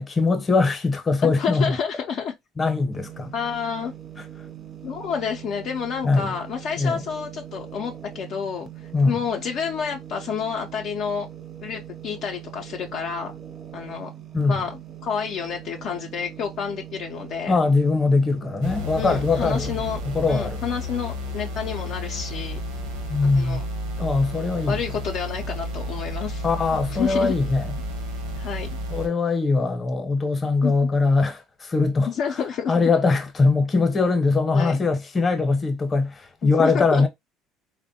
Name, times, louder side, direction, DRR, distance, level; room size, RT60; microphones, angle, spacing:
voice 1, 0.0-1.8 2.6-3.3 6.0-6.3 6.8-7.0 8.9-9.1 14.3-14.6 17.5-19.7 20.0-20.6 23.1-23.6 24.0-24.8 26.4-27.7 28.9-37.1, left 3 dB, 30° left, 0.8 m, -22 dB
voice 2, 1.2-2.3 3.3-3.9 4.8-8.7 9.0-11.3 11.6-13.3 13.7-14.1 14.5-17.6 19.0-20.0 20.3-22.6 23.3-23.6 24.7-26.4 26.9-27.3 28.4-28.7 30.6-30.7 32.1-32.7 34.5-34.8 36.4-37.0, left 7 dB, 60° left, 0.4 m, -29 dB
sound 1, 2.9-20.2, right 10 dB, 40° right, 0.5 m, -41 dB
sound 2, 18.6-29.1, left 1 dB, 80° right, 0.8 m, -32 dB
3.4 x 2.1 x 2.6 m
supercardioid pair, 80°, 0 cm